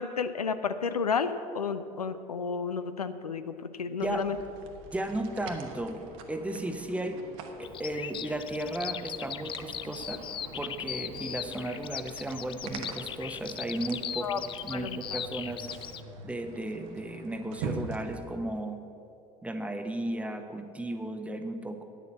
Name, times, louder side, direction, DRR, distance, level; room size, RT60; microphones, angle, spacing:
voice 1, 0.0-4.4 14.2-14.4 14.7-15.2, left 5 dB, 85° left, 11 dB, 0.5 m, -32 dB
sound 1, 4.0-18.2, right 4 dB, 60° right, 1.1 m, -45 dB
voice 2, 4.9-7.2 7.6-10.2 10.6-15.7 16.2-18.8 19.4-21.8, right 1 dB, 5° right, 6 dB, 0.9 m, -35 dB
Bird vocalization bird call bird song, 7.6-16.0, left 9 dB, 25° left, 0.4 m, -39 dB
9.4 x 6.9 x 8.4 m, 2.6 s
figure-of-eight pair, 70°, 19 cm